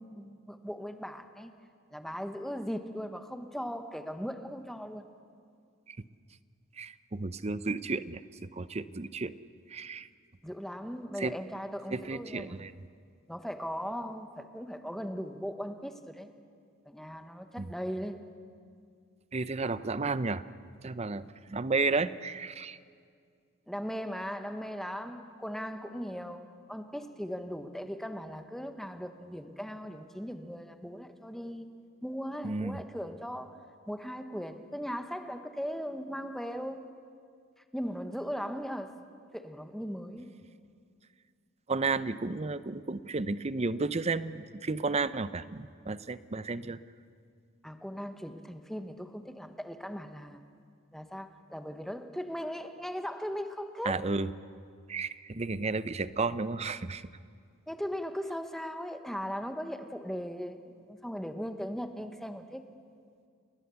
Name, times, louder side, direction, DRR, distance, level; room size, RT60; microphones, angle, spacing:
voice 1, 0.0-1.5 1.9-5.1 10.4-12.5 13.3-16.3 16.8-18.3 23.7-31.7 32.0-36.9 37.7-38.9 39.3-40.3 47.6-50.4 50.9-54.1 57.7-62.6, equal, ahead, 7 dB, 1.1 m, -38 dB
voice 2, 6.8-9.4 9.7-10.1 11.2-11.3 11.9-12.7 17.6-17.7 19.3-20.4 20.8-22.8 32.4-32.8 41.7-46.8 53.8-54.3 54.9-57.1, right 3 dB, 30° right, 15 dB, 0.6 m, -32 dB
29.5 x 19.5 x 7.0 m, 2.2 s
head